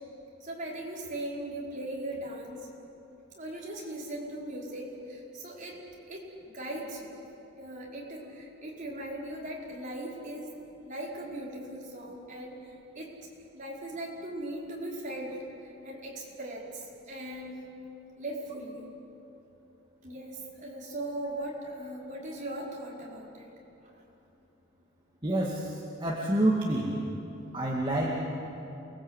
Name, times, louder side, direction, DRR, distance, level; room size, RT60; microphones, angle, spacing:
voice 1, 0.4-2.7 3.3-7.2 7.6-17.6 18.2-18.9 20.0-23.5 23.9-24.0, right 1 dB, 40° right, -3 dB, 5.1 m, -39 dB
voice 2, 25.2-26.9 27.5-28.1, right 1 dB, 25° right, -3 dB, 2.2 m, -28 dB
28.5 x 21.0 x 8.1 m, 3.0 s
head